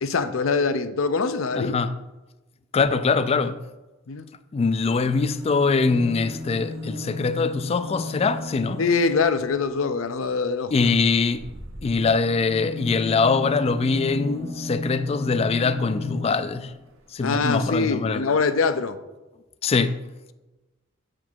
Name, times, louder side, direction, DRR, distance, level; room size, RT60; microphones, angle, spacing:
voice 1, 0.0-1.8 4.1-4.3 8.8-10.7 17.2-19.0, left 4 dB, 75° left, 0.6 m, -23 dB
voice 2, 1.5-1.9 2.7-3.6 4.5-8.8 10.7-11.5 11.8-16.7 17.1-18.3 19.6-20.0, left 4 dB, 30° left, 0.3 m, -23 dB
sound 1, 4.8-9.6 11.3-16.7 17.7-17.8 18.0-18.1, left 2 dB, 75° right, 1.3 m, -35 dB
7.6 x 7.1 x 4.5 m
head